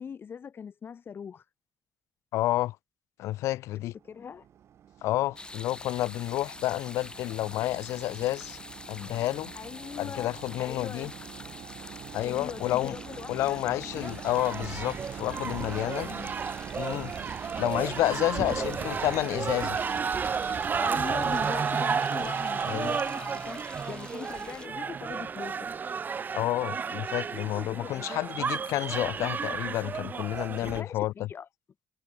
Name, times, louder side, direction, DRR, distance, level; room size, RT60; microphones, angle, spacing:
voice 1, 0.0-1.5 4.0-4.5 9.6-10.3 10.6-11.1 12.2-14.1 15.5-16.3 18.0-18.7 20.8-25.7 27.6-28.4 30.6-31.5, left 7 dB, 50° left, 5.3 m, -41 dB
voice 2, 2.3-2.8 3.2-3.9 5.0-8.6 8.9-9.5 10.0-11.1 12.1-13.0 13.3-16.1 16.7-17.1 17.6-19.8 22.6-22.9 26.3-31.3, left 15 dB, 85° left, 1.6 m, -30 dB
sound 1, 3.9-21.5, right 10 dB, 65° right, 1.6 m, -45 dB
sound 2, 5.4-24.7, left 2 dB, 20° left, 5.3 m, -47 dB
sound 3, 14.0-30.8, right 6 dB, 40° right, 0.6 m, -32 dB
supercardioid pair, 75°, 5 cm